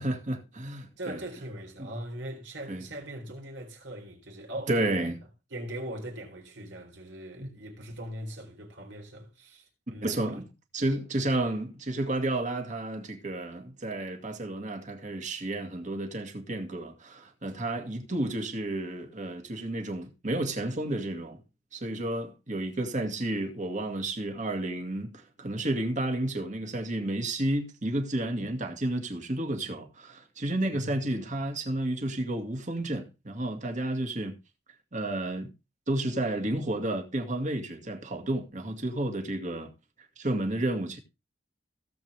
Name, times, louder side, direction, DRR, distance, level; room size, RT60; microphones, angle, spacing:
voice 1, 0.0-1.2 1.8-1.9 2.7-2.8 4.7-5.2 7.4-7.5 10.0-10.5 10.7-21.4 21.7-34.3 34.9-35.5 35.9-39.7 40.2-41.0, right 1 dB, 45° right, 2.1 m, -31 dB
voice 2, 1.0-4.7 5.5-10.3 17.5-17.7 30.7-31.0, right 1 dB, 75° right, 4.0 m, -40 dB
17.0 x 7.7 x 3.5 m
head